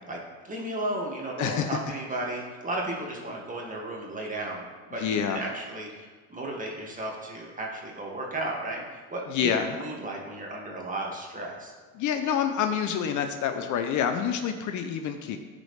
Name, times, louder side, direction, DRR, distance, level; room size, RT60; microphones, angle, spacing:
voice 1, 0.4-11.7, right 1 dB, 20° right, -2 dB, 2.1 m, -34 dB
voice 2, 1.4-1.7 5.0-5.4 9.3-9.8 11.9-15.4, left 8 dB, 45° left, 7 dB, 0.7 m, -27 dB
14.5 x 4.9 x 3.3 m, 1.4 s
hypercardioid pair, 95°, 43 cm